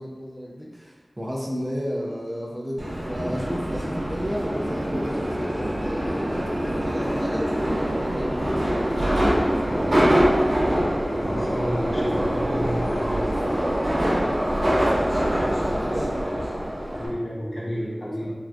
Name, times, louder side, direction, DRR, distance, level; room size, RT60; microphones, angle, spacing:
voice 1, 0.0-10.3 13.5-16.2 17.6-18.3, equal, 20° right, -3 dB, 0.5 m, -34 dB
Subway metro underground, 2.8-17.1, equal, 60° right, 0.8 m, -24 dB
voice 2, 11.2-13.2 16.9-18.3, equal, 60° left, -7 dB, 0.9 m, -30 dB
3.4 x 2.3 x 2.6 m, 1.4 s
wide cardioid pair, 60°, 0 cm